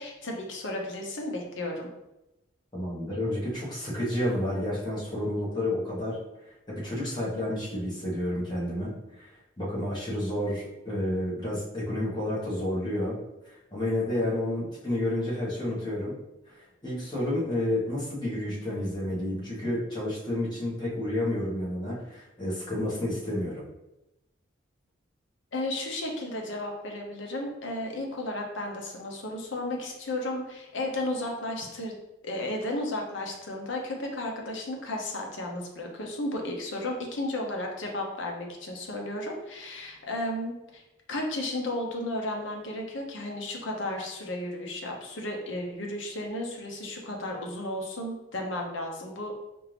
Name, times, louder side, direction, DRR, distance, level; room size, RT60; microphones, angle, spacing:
voice 1, 0.0-1.9 25.5-31.9 32.2-40.8 41.1-49.4, left 1 dB, 70° left, 1 dB, 0.8 m, -33 dB
voice 2, 2.7-6.2 6.7-13.2 13.4-16.1 16.5-23.6, left 1 dB, 20° left, -7 dB, 1.3 m, -30 dB
4.5 x 2.5 x 3.3 m, 0.93 s
head